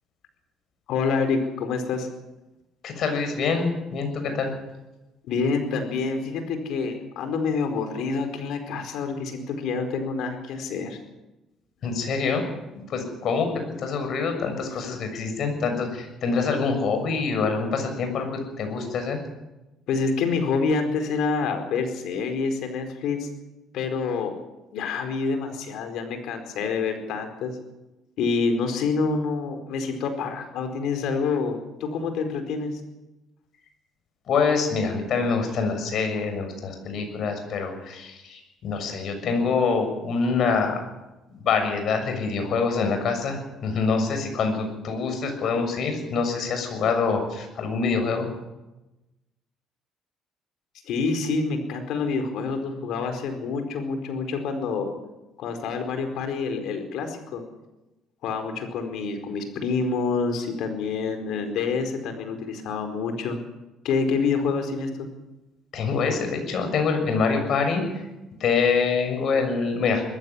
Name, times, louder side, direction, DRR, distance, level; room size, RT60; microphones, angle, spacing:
voice 1, 0.9-2.1 5.3-11.0 19.9-23.3 23.7-24.3 24.7-27.5 28.2-32.8 50.9-54.9 55.4-57.4 58.2-63.4 63.8-64.9, left 4 dB, 75° left, 6 dB, 4.5 m, -27 dB
voice 2, 2.8-4.5 11.8-12.4 12.9-19.2 34.3-40.8 41.4-48.3 65.7-67.8 68.4-70.0, left 5 dB, 60° left, 5 dB, 6.8 m, -25 dB
20.5 x 15.5 x 9.9 m, 1.0 s
cardioid pair, 105°, 0 cm